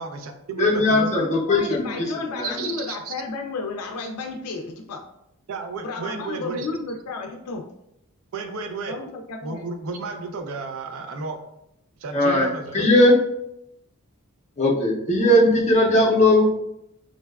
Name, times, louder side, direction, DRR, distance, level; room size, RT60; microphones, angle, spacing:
voice 1, 0.0-1.1 2.6-3.1 5.5-6.7 8.3-9.0 9.4-11.4 12.0-12.9, right 3 dB, 65° right, 6 dB, 0.4 m, -32 dB
voice 2, 0.6-1.9 2.4-2.5 12.1-13.2 14.6-16.4, left 1 dB, 30° left, -3 dB, 0.5 m, -18 dB
voice 3, 1.2-5.0 5.8-7.6 8.8-9.6, left 3 dB, 90° left, 3 dB, 0.4 m, -32 dB
3.8 x 2.2 x 2.2 m, 0.82 s
head